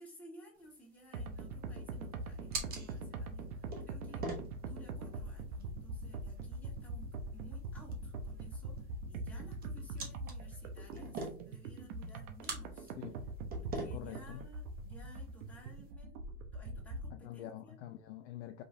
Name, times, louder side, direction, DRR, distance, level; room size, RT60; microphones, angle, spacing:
voice 1, 0.0-4.2 4.6-12.9 13.5-17.8, equal, 5° left, 1.9 m, -57 dB
sound 1, 0.6-15.9, right 3 dB, 20° right, 0.7 m, -48 dB
sound 2, 1.1-17.2, right 2 dB, 65° right, 0.9 m, -43 dB
voice 2, 13.0-13.3 13.9-14.4 17.1-18.6, left 12 dB, 50° left, 0.5 m, -46 dB
5.2 x 3.1 x 2.6 m
supercardioid pair, 140°, 47 cm